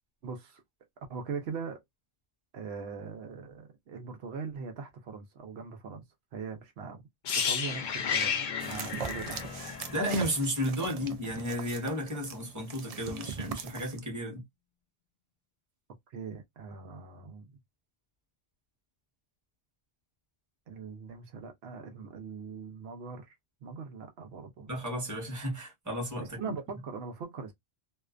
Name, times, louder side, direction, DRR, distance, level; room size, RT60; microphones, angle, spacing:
voice 1, 0.2-0.6 1.1-1.8 2.5-6.0 6.3-7.0 7.4-9.5 16.1-17.6 20.7-23.4 23.6-24.8 26.2-27.5, right 5 dB, 80° right, 0.9 m, -41 dB
sound 1, 7.2-11.1 11.4-11.6, left 6 dB, 60° left, 0.6 m, -33 dB
sound 2, 8.6-14.0, right 6 dB, 55° right, 0.4 m, -40 dB
voice 2, 9.9-14.4 24.7-26.5, equal, 20° right, 1.0 m, -33 dB
2.5 x 2.2 x 2.4 m
omnidirectional pair, 1.1 m